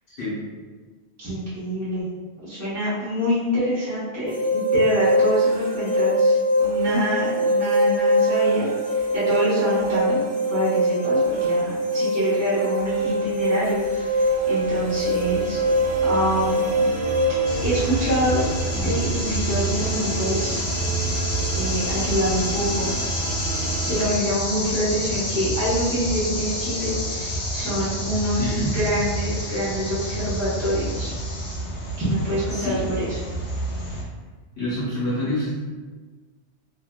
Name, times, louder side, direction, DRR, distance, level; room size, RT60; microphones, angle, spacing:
voice 1, 1.2-2.1 2.4-10.2 10.5-15.6 16.0-16.9 17.6-20.7 21.5-22.9 23.9-31.1 32.0-33.2, equal, 15° right, -12 dB, 0.6 m, -26 dB
sound 1, 4.3-17.3, equal, 50° right, 1.1 m, -22 dB
sound 2, 13.1-24.1, right 4 dB, 80° right, 1.0 m, -31 dB
sound 3, 17.4-34.0, equal, 85° left, 0.9 m, -28 dB
voice 2, 28.4-28.7 32.5-32.8 34.5-35.5, left 1 dB, 55° left, -10 dB, 1.1 m, -26 dB
2.7 x 2.3 x 2.2 m, 1.4 s
omnidirectional pair, 1.2 m